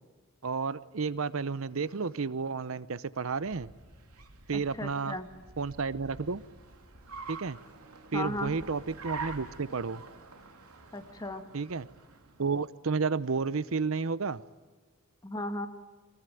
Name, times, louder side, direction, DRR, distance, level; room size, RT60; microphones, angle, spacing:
voice 1, 0.4-3.7 4.5-5.2 5.6-6.4 7.3-7.6 8.1-10.0 11.5-11.9 12.4-14.4, right 4 dB, 65° right, 17 dB, 0.7 m, -31 dB
Car, 3.4-12.7, right 4 dB, 85° right, 3.0 m, -47 dB
voice 2, 4.5-5.3 8.1-8.5 10.9-11.5 15.2-15.7, left 1 dB, 15° left, 7 dB, 1.8 m, -36 dB
24.0 x 21.0 x 9.2 m, 1.3 s
head